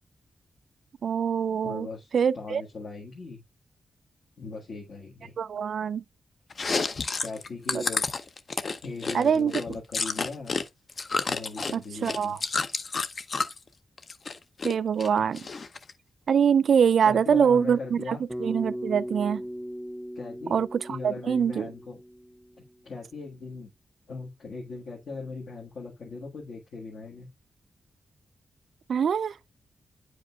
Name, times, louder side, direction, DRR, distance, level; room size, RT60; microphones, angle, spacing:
voice 1, 1.0-1.9 2.1-2.6 5.4-6.0 7.7-7.8 9.1-9.5 11.7-12.4 14.6-15.4 16.3-19.4 20.5-21.7 28.9-29.3, right 7 dB, 60° right, 0.3 m, -24 dB
voice 2, 1.6-3.4 4.4-5.3 7.2-8.0 8.8-10.6 11.2-12.4 17.0-18.2 20.1-20.6 20.9-22.0 22.8-23.7 24.1-27.3, left 3 dB, 60° left, 1.5 m, -39 dB
Chewing mastication, 6.5-10.6 10.9-13.6 14.0-14.7 15.0-15.9, left 4 dB, 40° left, 0.6 m, -30 dB
Bass guitar, 18.3-22.7, equal, 5° right, 0.5 m, -38 dB
9.4 x 5.1 x 2.3 m
wide cardioid pair, 155°, 0 cm